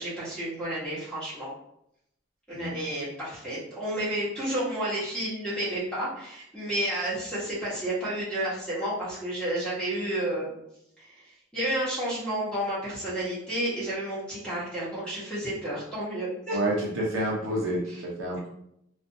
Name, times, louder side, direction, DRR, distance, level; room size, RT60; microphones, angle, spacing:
voice 1, 0.0-1.5 2.5-10.5 11.0-11.1 11.5-16.6 17.9-18.0, right 1 dB, 5° left, -9 dB, 1.0 m, -31 dB
voice 2, 16.5-18.5, right 1 dB, 75° right, -3 dB, 0.7 m, -29 dB
2.5 x 2.4 x 2.6 m, 0.77 s
head